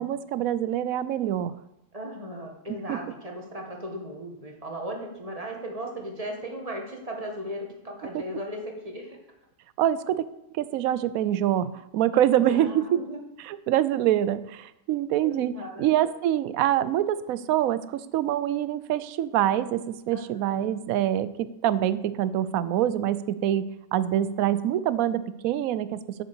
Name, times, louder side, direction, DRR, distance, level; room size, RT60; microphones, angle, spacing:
voice 1, 0.0-1.6 2.7-3.0 8.1-8.2 9.8-10.3 10.5-13.0 13.4-15.5 15.8-26.2, right 11 dB, 70° right, 15 dB, 0.9 m, -25 dB
voice 2, 1.9-9.2 12.1-13.2 15.2-15.9 20.1-20.7, equal, 25° right, 1 dB, 1.6 m, -37 dB
8.8 x 6.7 x 6.9 m, 0.89 s
omnidirectional pair, 1.7 m